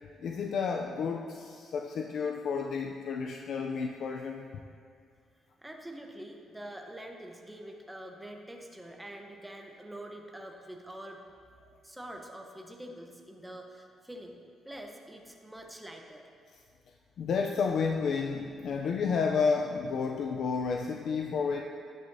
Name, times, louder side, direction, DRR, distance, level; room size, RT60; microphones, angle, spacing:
voice 1, 0.2-4.5 17.2-21.6, left 5 dB, 65° left, 2 dB, 0.5 m, -31 dB
voice 2, 5.6-11.4 11.8-14.4 14.6-16.3, right 1 dB, 5° right, 2 dB, 1.0 m, -45 dB
10.5 x 9.5 x 2.8 m, 2.2 s
cardioid pair, 90°, 0 cm